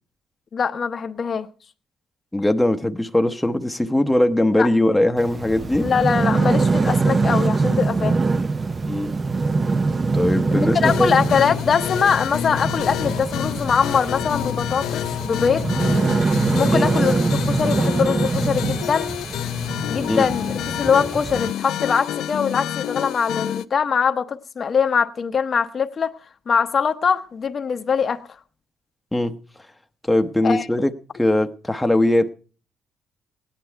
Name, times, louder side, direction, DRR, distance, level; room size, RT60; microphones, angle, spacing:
voice 1, 0.5-1.5 4.6-4.7 5.8-8.2 10.5-15.6 16.5-17.2 17.5-19.1 19.9-26.1 26.5-28.2 30.4-30.7, left 6 dB, 45° left, 0.9 m, -22 dB
voice 2, 2.3-5.9 8.9-9.1 10.1-11.1 16.7-16.9 20.1-20.3 29.1-29.4 30.1-32.3, left 1 dB, 5° left, 0.9 m, -20 dB
sound 1, 5.2-21.5, right 3 dB, 30° right, 0.5 m, -23 dB
sound 2, 10.8-23.7, left 11 dB, 85° left, 0.6 m, -28 dB
16.5 x 10.5 x 4.6 m
cardioid pair, 90°, 0 cm